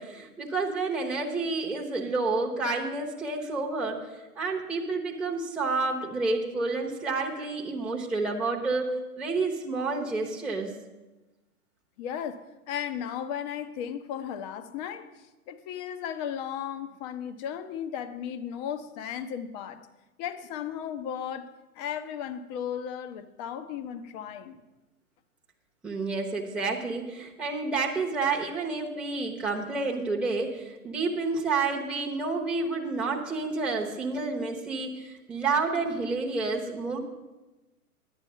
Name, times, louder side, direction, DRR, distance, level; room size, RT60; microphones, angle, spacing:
voice 1, 0.0-10.7 25.8-37.0, right 3 dB, 5° right, 1.0 m, -29 dB
voice 2, 12.0-15.1 15.5-19.9 20.2-24.6, left 9 dB, 30° left, 0.7 m, -35 dB
11.0 x 8.8 x 5.6 m
hypercardioid pair, 125°, 44 cm